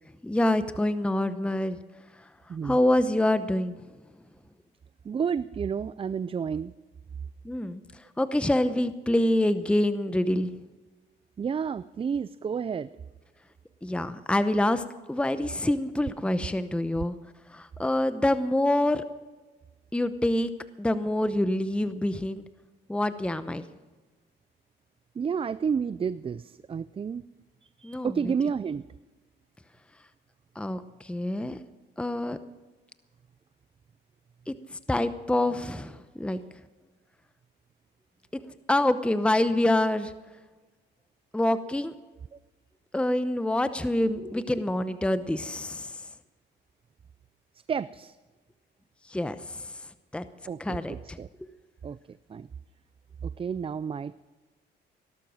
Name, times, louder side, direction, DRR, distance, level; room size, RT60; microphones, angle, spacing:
voice 1, 0.2-1.8 2.6-3.8 7.4-7.8 8.2-10.5 13.8-14.8 15.1-17.2 17.5-19.0 19.9-20.5 20.8-22.4 22.9-23.6 27.8-28.1 30.6-31.6 32.0-32.4 34.5-34.6 34.9-36.4 38.7-40.1 41.3-41.9 42.9-45.9 49.1-49.6 50.1-50.2 50.6-51.2, left 1 dB, 5° left, 12 dB, 0.8 m, -26 dB
voice 2, 5.1-6.7 11.4-12.9 25.2-27.2 27.8-28.8 47.7-48.2 50.5-51.3 51.8-52.0 52.3-52.5 53.2-54.2, right 6 dB, 30° right, 17 dB, 0.4 m, -30 dB
18.0 x 12.0 x 6.3 m, 1.2 s
cardioid pair, 90°, 20 cm